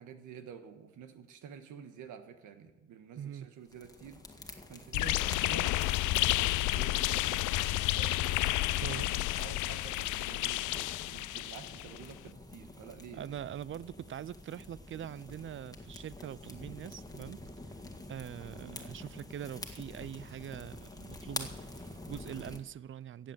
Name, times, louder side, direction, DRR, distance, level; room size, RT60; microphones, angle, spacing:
voice 1, 0.0-13.3 18.6-18.8, right 7 dB, 85° right, 1.5 m, -50 dB
voice 2, 3.2-3.5 8.8-9.0 13.1-17.4 18.1-23.3, right 10 dB, 45° right, 0.5 m, -43 dB
sound 1, 3.7-22.6, left 2 dB, 10° left, 1.8 m, -48 dB
sound 2, 4.9-12.0, left 17 dB, 80° left, 0.5 m, -31 dB
15.5 x 7.7 x 8.9 m
cardioid pair, 90°, 30 cm